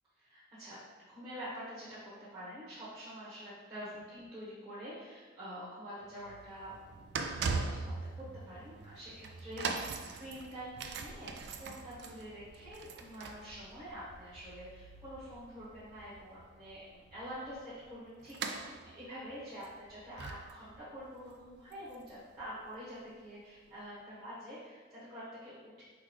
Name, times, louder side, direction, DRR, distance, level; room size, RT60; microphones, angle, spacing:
voice 1, 0.2-0.8 1.1-25.8, equal, 20° right, -11 dB, 1.1 m, -47 dB
sound 1, 6.1-23.0 23.7-23.8, right 4 dB, 60° right, 0.3 m, -42 dB
4.6 x 3.8 x 3.1 m, 1.4 s
head